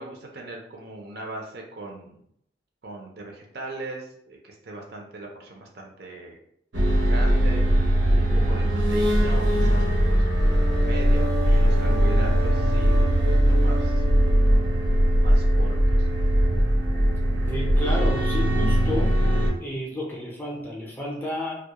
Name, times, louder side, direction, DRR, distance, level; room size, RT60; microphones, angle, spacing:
voice 1, 0.0-2.2 2.8-6.4 7.1-10.3 10.8-13.1 13.5-14.0 15.2-16.1, right 2 dB, 55° right, 0 dB, 0.5 m, -39 dB
sound 1, 6.7-19.5, right 1 dB, 85° right, 0.8 m, -20 dB
voice 2, 17.4-19.1 19.6-21.7, left 1 dB, 10° left, -3 dB, 0.5 m, -31 dB
2.2 x 2.0 x 2.8 m, 0.70 s
head